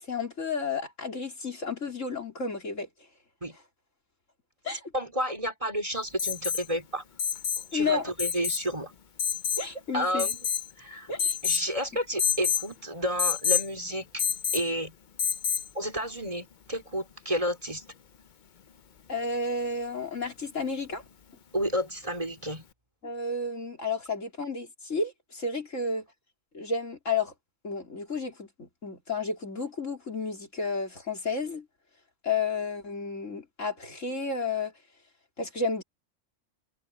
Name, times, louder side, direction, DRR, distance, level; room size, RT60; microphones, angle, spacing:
voice 1, 0.0-2.9 4.6-4.9 7.7-8.1 9.6-10.3 11.1-11.4 19.1-21.0 23.0-26.0 26.5-27.3 27.6-31.7 32.2-34.7 35.4-35.8, left 4 dB, 85° left, 4.3 m, -32 dB
voice 2, 4.9-7.0 7.7-8.9 9.9-10.4 10.8-11.1 11.4-14.2 14.5-14.9 15.7-17.8 21.5-22.6, equal, 25° right, 4.5 m, -31 dB
Alarm, 6.2-6.7 7.2-7.7 8.2-8.6 9.2-9.7 10.2-10.7 11.2-11.7 12.2-12.7 13.2-13.7 14.2-14.7 15.2-15.7 17.4-17.5, left 7 dB, 45° left, 0.8 m, -28 dB
omnidirectional pair, 1.3 m